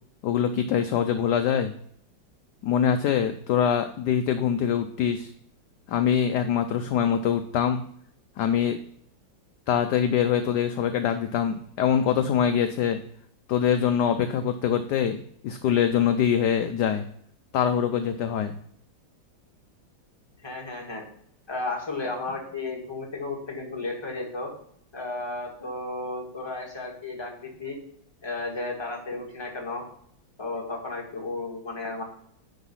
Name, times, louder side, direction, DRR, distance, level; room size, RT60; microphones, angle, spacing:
voice 1, 0.2-1.7 2.6-5.3 5.9-7.8 8.4-8.8 9.7-13.0 13.5-17.0 17.5-18.5, left 8 dB, 75° left, 8 dB, 1.0 m, -24 dB
voice 2, 20.4-21.0 21.5-24.5 24.9-27.8 28.2-29.8 30.4-32.0, left 2 dB, 15° left, -1 dB, 1.7 m, -33 dB
10.0 x 4.0 x 5.5 m, 0.67 s
omnidirectional pair, 2.2 m